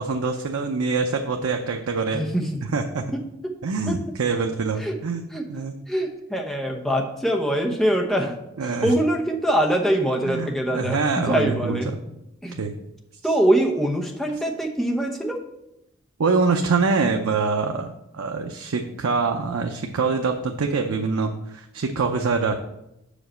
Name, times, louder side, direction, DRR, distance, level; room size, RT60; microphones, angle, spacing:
voice 1, 0.0-2.2 2.6-3.0 3.6-5.2 5.5-5.8 8.6-8.9 10.2-12.0 12.6-12.7 13.2-13.4 16.2-17.9 18.1-22.5, right 4 dB, 90° right, 4 dB, 0.5 m, -24 dB
voice 2, 2.1-2.5 3.1-3.2 3.9-4.0 4.8-4.9 5.3-5.5 5.9-8.3 8.8-11.9 12.4-12.6 13.2-15.4, right 1 dB, ahead, 1 dB, 0.8 m, -23 dB
5.8 x 5.1 x 6.3 m, 0.87 s
head